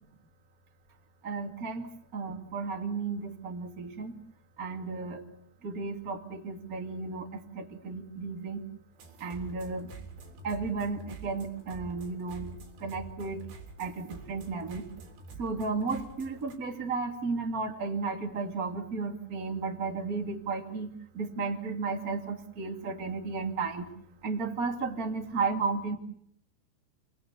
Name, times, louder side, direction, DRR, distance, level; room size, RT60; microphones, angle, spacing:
voice 1, 1.2-4.2 4.6-5.2 5.6-8.6 9.2-9.9 10.4-12.5 12.8-13.4 13.8-14.9 15.3-23.9 24.2-26.0, right 4 dB, 25° right, 2 dB, 2.1 m, -34 dB
sound 1, 8.9-16.5, right 3 dB, 75° right, 5.7 m, -47 dB
29.0 x 19.0 x 8.2 m, 0.70 s
omnidirectional pair, 5.0 m